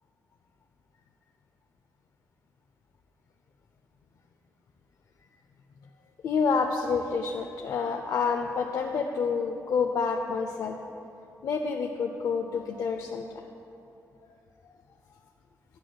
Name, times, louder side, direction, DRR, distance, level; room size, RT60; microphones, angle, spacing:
voice 1, 6.2-10.8 11.4-13.4, left 5 dB, 65° left, 3 dB, 0.4 m, -28 dB
11.0 x 7.5 x 2.2 m, 2.8 s
wide cardioid pair, 130°, 6 cm